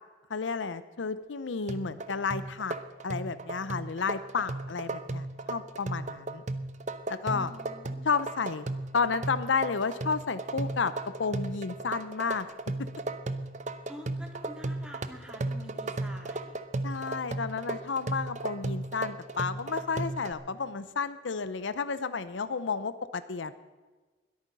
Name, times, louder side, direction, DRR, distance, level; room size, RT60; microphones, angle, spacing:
voice 1, 0.3-2.8 3.0-6.4 7.1-7.5 8.0-8.7 8.9-10.9 11.2-12.5 16.8-23.5, left 5 dB, 85° left, 13 dB, 0.7 m, -31 dB
sound 1, 1.7-20.3, right 2 dB, 40° right, 0.7 m, -35 dB
voice 2, 7.3-8.1 13.9-16.6, equal, 5° right, 1 dB, 2.1 m, -47 dB
21.5 x 8.8 x 5.4 m, 1.3 s
head